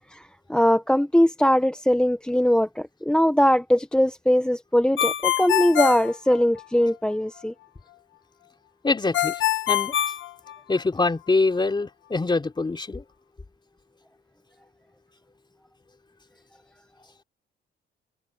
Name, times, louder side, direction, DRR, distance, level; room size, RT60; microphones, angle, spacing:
voice 1, 0.5-7.5, equal, 5° left, 0.8 m, -21 dB
Ringtone, 5.0-6.9 9.1-11.0, left 12 dB, 75° left, 1.0 m, -25 dB
voice 2, 8.8-9.9 10.7-13.0, left 3 dB, 25° left, 3.4 m, -24 dB
cardioid pair, 90°, 20 cm